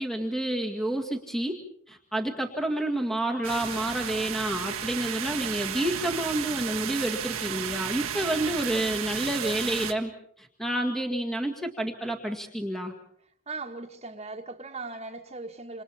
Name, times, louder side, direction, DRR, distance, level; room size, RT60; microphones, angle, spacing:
voice 1, 0.0-1.6 1.9-10.1 10.4-12.9, right 1 dB, ahead, 2.0 m, -29 dB
sound 1, 3.4-9.9, right 9 dB, 90° right, 1.7 m, -33 dB
voice 2, 13.5-15.8, right 3 dB, 30° right, 1.8 m, -38 dB
28.0 x 28.0 x 4.4 m
head